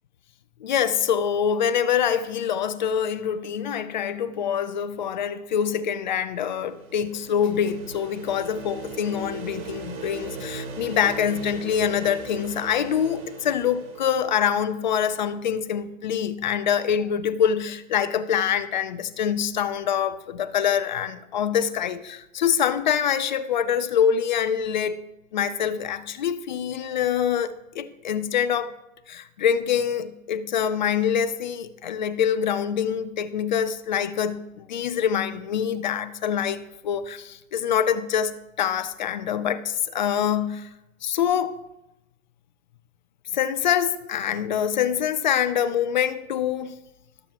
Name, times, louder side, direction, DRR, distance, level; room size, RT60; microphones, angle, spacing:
voice 1, 0.6-25.0 25.3-28.7 29.1-40.7 41.0-41.6 43.3-46.8, left 8 dB, 35° left, 0.5 m, -25 dB
sound 1, 6.2-15.0, right 4 dB, 80° right, 3.0 m, -39 dB
19.5 x 7.3 x 3.0 m
hypercardioid pair, 150°, 42 cm